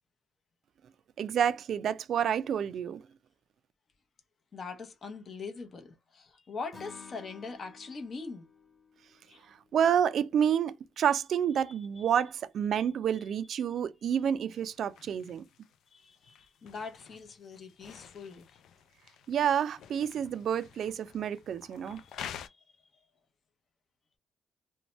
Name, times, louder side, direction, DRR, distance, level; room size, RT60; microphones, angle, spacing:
voice 1, 1.2-3.1 9.5-15.4 19.3-22.0, right 8 dB, 65° right, 0.3 m, -29 dB
voice 2, 4.5-8.5 9.3-9.5 15.9-18.4 21.9-22.6, left 4 dB, 45° left, 0.7 m, -42 dB
Acoustic guitar / Strum, 6.7-10.0, left 5 dB, 20° left, 1.2 m, -53 dB
sound 1, 14.5-22.5, left 9 dB, 75° left, 0.3 m, -49 dB
2.6 x 2.2 x 2.9 m
cardioid pair, 90°, 0 cm